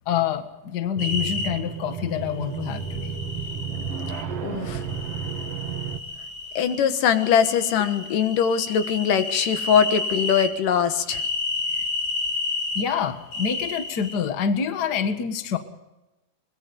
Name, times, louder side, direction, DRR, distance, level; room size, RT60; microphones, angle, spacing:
voice 1, 0.1-3.2 11.7-11.8 12.7-15.6, left 7 dB, 45° left, 8 dB, 1.5 m, -27 dB
sound 1, 1.0-1.5 2.6-4.2 4.8-6.8 7.1-10.5 11.1-12.8 13.3-14.2, left 3 dB, 70° left, 4.5 m, -31 dB
sound 2, 1.0-6.0, right 7 dB, 60° right, 2.0 m, -32 dB
voice 2, 4.4-4.8 6.6-11.2, left 8 dB, 90° left, 9 dB, 3.0 m, -22 dB
23.0 x 21.5 x 5.3 m, 0.99 s
omnidirectional pair, 3.6 m